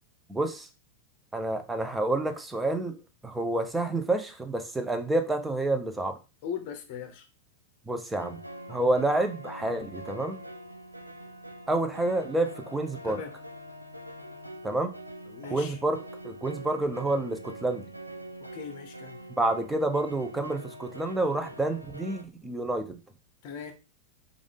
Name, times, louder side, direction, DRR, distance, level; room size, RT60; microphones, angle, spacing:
voice 1, 0.3-0.7 1.3-3.0 3.2-6.2 7.9-8.4 8.7-10.4 11.7-13.2 14.6-14.9 15.5-16.0 16.2-17.8 19.4-23.0, right 2 dB, 10° right, 0.6 m, -28 dB
voice 2, 6.4-7.3 13.0-13.3 15.3-15.8 18.4-19.2 23.4-23.7, left 7 dB, 45° left, 0.7 m, -39 dB
sound 1, 8.2-22.2, right 1 dB, 85° right, 0.4 m, -44 dB
4.9 x 2.5 x 3.5 m
figure-of-eight pair, 90°, 0 cm